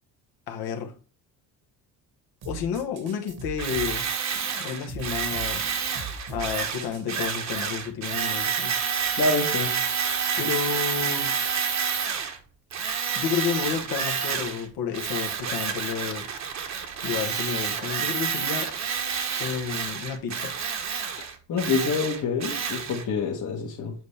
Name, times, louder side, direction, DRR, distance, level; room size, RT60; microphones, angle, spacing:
voice 1, 0.5-0.9 2.4-4.0 4.6-5.6 6.3-8.7 10.4-11.3 13.1-16.3 17.0-18.7 19.4-20.5, left 7 dB, 70° left, 1.2 m, -31 dB
sound 1, 2.4-7.3, right 3 dB, 70° right, 1.7 m, -40 dB
Tools, 3.6-12.4 12.7-14.6 14.9-23.0, right 7 dB, 45° right, 1.1 m, -29 dB
voice 2, 9.2-9.8 21.2-23.9, left 4 dB, 50° left, 1.3 m, -27 dB
7.8 x 4.2 x 3.3 m
cardioid pair, 120°, 39 cm